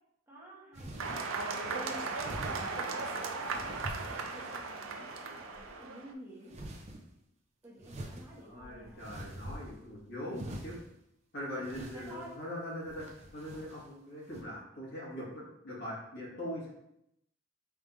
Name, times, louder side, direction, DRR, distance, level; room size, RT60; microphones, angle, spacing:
voice 1, 0.3-6.6 7.6-9.1 11.9-12.3, equal, 15° right, -6 dB, 1.1 m, -51 dB
sound 1, 0.7-1.2 2.2-2.7 3.5-4.7 5.2-5.7 6.5-7.0 7.8-9.9 10.3-10.9 11.6-12.3 12.9-13.8 14.3-14.4, right 1 dB, 35° right, 0.6 m, -44 dB
sound 2, 1.0-6.1, right 4 dB, 85° right, 0.5 m, -37 dB
voice 2, 8.4-10.8 11.3-13.1 13.3-16.7, equal, 60° left, -6 dB, 1.7 m, -41 dB
4.8 x 3.5 x 2.6 m, 0.79 s
head